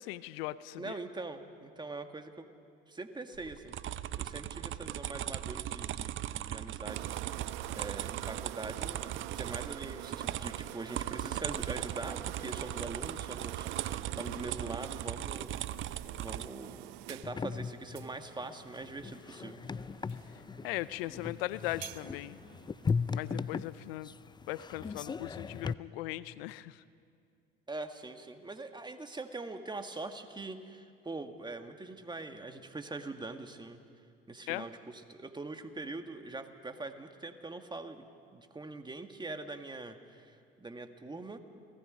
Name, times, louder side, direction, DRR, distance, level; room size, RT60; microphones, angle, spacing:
voice 1, 0.0-1.0 20.6-22.4 23.1-24.2 24.5-26.8 34.5-34.7, left 17 dB, 75° left, 17 dB, 0.7 m, -38 dB
voice 2, 0.8-2.5 2.9-3.7 4.2-7.1 7.7-15.5 16.1-19.6 27.7-33.8 34.3-38.1 38.3-41.4, right 3 dB, 15° right, 7 dB, 1.8 m, -43 dB
sound 1, 3.3-16.5, right 12 dB, 40° right, 0.7 m, -38 dB
sound 2, 6.9-23.4, right 17 dB, 75° right, 0.6 m, -47 dB
sound 3, 17.2-25.7, left 5 dB, 15° left, 0.5 m, -38 dB
29.0 x 18.0 x 5.3 m, 2.3 s
hypercardioid pair, 75°, 29 cm